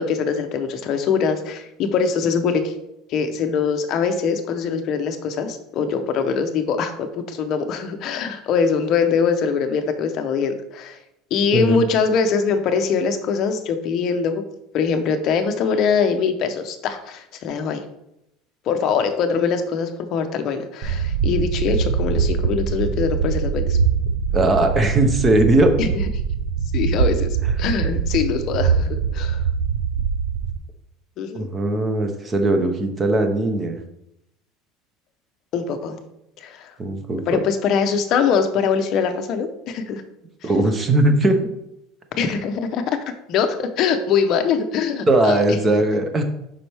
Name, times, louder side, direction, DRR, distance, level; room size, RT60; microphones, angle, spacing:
voice 1, 0.0-2.7 3.1-11.0 11.3-14.4 14.7-17.8 18.6-23.8 25.8-26.0 26.7-29.4 31.2-31.5 35.5-36.0 36.4-36.7 37.3-40.0 40.4-40.5 42.2-43.0 43.3-45.4, left 6 dB, 35° left, 6 dB, 0.7 m, -22 dB
sound 1, 20.8-30.6, right 6 dB, 85° right, 0.4 m, -23 dB
voice 2, 24.3-25.8 31.3-33.8 36.8-37.4 40.4-41.4 45.1-46.2, right 2 dB, 15° right, 6 dB, 0.7 m, -19 dB
7.4 x 5.3 x 3.4 m, 0.84 s
cardioid pair, 175°, 0 cm